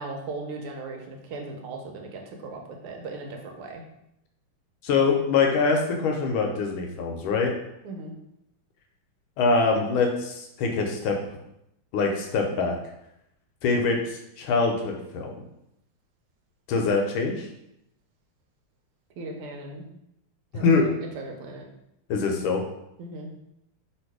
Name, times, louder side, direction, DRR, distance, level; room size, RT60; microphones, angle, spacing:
voice 1, 0.0-3.8 7.8-8.1 19.2-19.9 20.5-21.7 23.0-23.3, right 3 dB, 80° right, 2 dB, 1.6 m, -38 dB
voice 2, 4.8-7.5 9.4-11.2 11.9-12.8 13.6-15.3 16.7-17.5 20.5-20.9 22.1-22.6, left 4 dB, 75° left, 2 dB, 1.3 m, -24 dB
3.4 x 2.9 x 4.6 m, 0.81 s
omnidirectional pair, 2.4 m